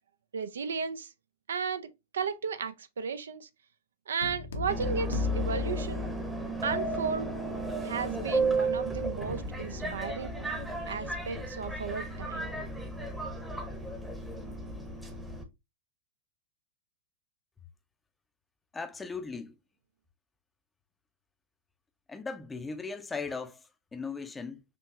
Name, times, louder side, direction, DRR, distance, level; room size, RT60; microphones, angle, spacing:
voice 1, 0.3-1.1 1.5-3.5 4.1-6.1 6.6-7.3 7.8-10.3 10.9-12.5, right 6 dB, 75° right, 0.4 m, -34 dB
sound 1, 4.2-6.8, left 6 dB, 75° left, 0.7 m, -34 dB
Subway metro underground, 4.7-15.4, right 2 dB, 5° right, 0.8 m, -34 dB
voice 2, 18.7-19.6 22.1-24.6, left 4 dB, 15° left, 0.5 m, -38 dB
4.5 x 2.8 x 2.4 m
figure-of-eight pair, 100°, 0 cm